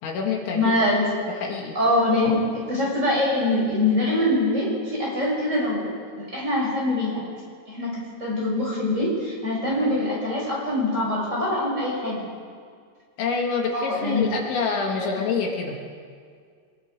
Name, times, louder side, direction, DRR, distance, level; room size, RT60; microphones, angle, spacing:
voice 1, 0.0-0.7 1.3-1.8 13.2-15.8, left 5 dB, 70° left, 0 dB, 4.0 m, -26 dB
voice 2, 0.5-1.1 1.7-5.9 6.2-7.2 7.7-12.2 13.7-14.2 15.0-15.2, left 1 dB, 15° right, -5 dB, 6.8 m, -24 dB
25.5 x 22.5 x 5.2 m, 2.1 s
omnidirectional pair, 5.6 m